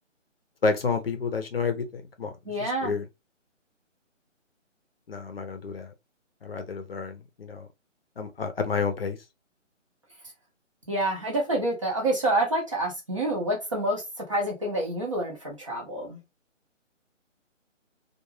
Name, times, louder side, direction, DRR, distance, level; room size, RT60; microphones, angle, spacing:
voice 1, 0.6-2.3 2.6-3.1 5.1-5.9 6.4-7.7 8.2-9.2, left 4 dB, 50° left, 0.6 m, -30 dB
voice 2, 2.5-2.9 10.9-16.2, right 1 dB, 25° right, 0.6 m, -28 dB
2.3 x 2.3 x 3.1 m
figure-of-eight pair, 155°, 38 cm